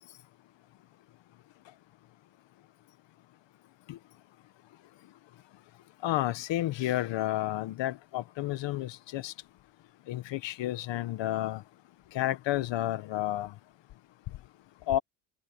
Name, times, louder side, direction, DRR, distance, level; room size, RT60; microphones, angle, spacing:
voice 1, 6.0-9.3 10.1-11.6 12.1-13.5 14.9-15.0, left 14 dB, 65° left, 1.6 m, -31 dB
supercardioid pair, 90°, 48 cm